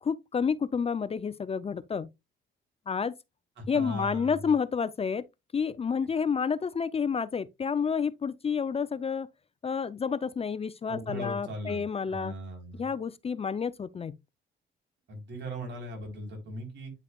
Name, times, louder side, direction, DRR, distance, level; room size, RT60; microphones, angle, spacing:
voice 1, 0.0-2.1 2.9-3.1 3.7-5.3 5.5-9.3 9.6-12.3 12.7-14.2, left 6 dB, 30° left, 0.5 m, -29 dB
voice 2, 3.6-4.5 10.9-12.9 15.1-16.9, equal, 65° right, 3.6 m, -39 dB
9.3 x 5.5 x 2.3 m
cardioid pair, 90°, 20 cm